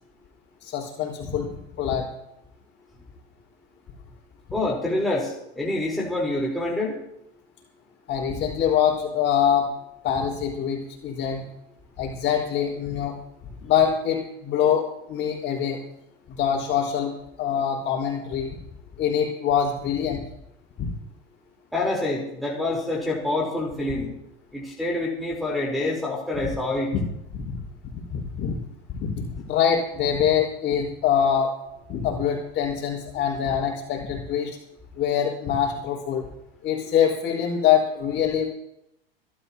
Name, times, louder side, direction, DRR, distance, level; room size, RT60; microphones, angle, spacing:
voice 1, 0.6-1.5 1.8-2.0 8.1-9.7 10.0-11.4 12.0-13.1 13.6-15.8 16.3-18.5 19.0-20.2 20.8-20.9 27.3-27.6 28.1-28.6 28.9-31.5 31.9-34.6 35.0-36.2 36.6-38.5, left 8 dB, 40° left, -1 dB, 4.9 m, -24 dB
voice 2, 4.5-7.0 21.7-24.1 24.5-26.9, left 2 dB, ahead, -6 dB, 4.0 m, -26 dB
24.5 x 13.0 x 2.9 m, 0.83 s
hypercardioid pair, 110°, 31 cm